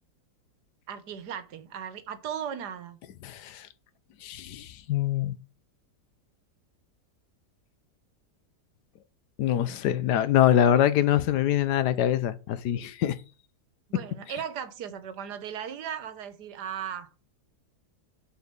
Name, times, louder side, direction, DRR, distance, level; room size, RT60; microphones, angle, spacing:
voice 1, 0.9-3.0 13.9-17.1, right 8 dB, 85° right, 1.6 m, -37 dB
voice 2, 3.2-3.6 4.2-5.3 9.4-13.1, left 11 dB, 85° left, 1.3 m, -24 dB
6.8 x 4.7 x 6.7 m
omnidirectional pair, 1.7 m